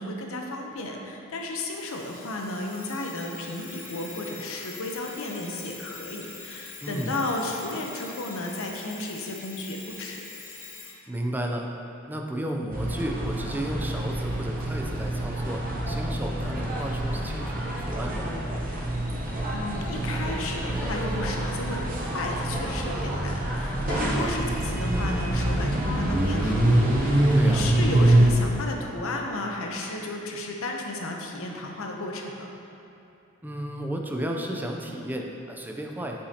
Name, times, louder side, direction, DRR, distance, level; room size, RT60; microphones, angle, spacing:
voice 1, 0.0-10.2 19.0-32.5, left 2 dB, 70° left, 1 dB, 0.7 m, -33 dB
Alarm, 1.7-11.0, left 4 dB, 90° left, 1.4 m, -44 dB
voice 2, 6.8-7.2 11.1-11.7 12.1-18.3 24.1-24.3 27.3-27.7 33.4-36.2, right 1 dB, 10° right, 1 dB, 0.4 m, -33 dB
sound 1, 12.7-28.3, right 1 dB, 40° right, 0.8 m, -26 dB
8.1 x 5.5 x 2.8 m, 2.7 s
head